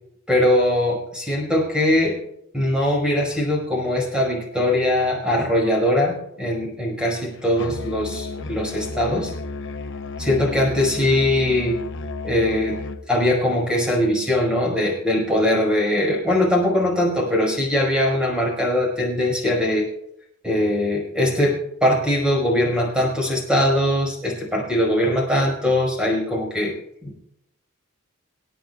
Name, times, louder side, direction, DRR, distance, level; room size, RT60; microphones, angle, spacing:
voice 1, 0.3-2.2 2.5-9.3 10.2-11.8 12.2-19.8 20.4-26.7 27.0-27.2, left 1 dB, 5° right, -1 dB, 5.2 m, -21 dB
Musical instrument, 7.6-13.1, left 3 dB, 60° left, 0.8 m, -33 dB
28.0 x 9.4 x 2.4 m, 0.77 s
head